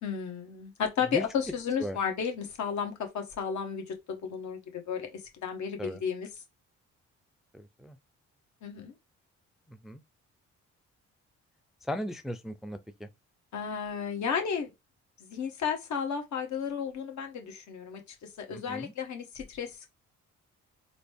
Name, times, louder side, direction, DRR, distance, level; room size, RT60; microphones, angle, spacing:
voice 1, 0.0-6.3 8.6-8.9 13.5-14.7 15.2-19.8, left 7 dB, 70° left, 1.3 m, -33 dB
voice 2, 7.5-8.0 9.7-10.0 11.9-13.1 18.5-18.9, equal, ahead, 0.4 m, -37 dB
4.0 x 2.1 x 3.4 m
cardioid pair, 90°, 30 cm